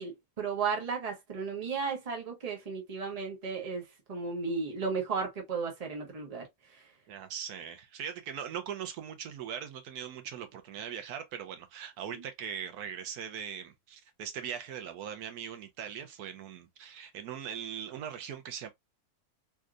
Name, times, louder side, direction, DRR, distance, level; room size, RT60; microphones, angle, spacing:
voice 1, 0.0-6.8 12.1-12.2, right 5 dB, 30° right, 0.9 m, -35 dB
voice 2, 7.1-18.7, right 8 dB, 90° right, 1.2 m, -40 dB
3.4 x 2.7 x 2.3 m
omnidirectional pair, 1.6 m